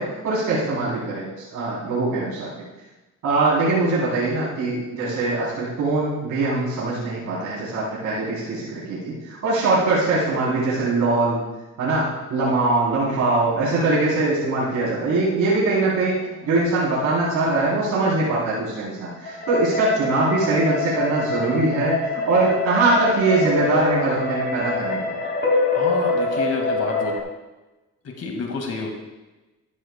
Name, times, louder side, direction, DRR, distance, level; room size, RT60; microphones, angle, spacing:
voice 1, 0.0-2.5 3.2-11.4 11.8-16.2 16.4-25.2, right 3 dB, 75° right, -7 dB, 3.7 m, -22 dB
sound 1, 14.1-16.9 19.2-27.2, left 3 dB, 35° left, 2.5 m, -26 dB
voice 2, 25.7-27.1 28.0-28.9, left 4 dB, 55° left, 1 dB, 2.1 m, -29 dB
13.0 x 12.0 x 2.3 m, 1.1 s
cardioid pair, 90°, 30 cm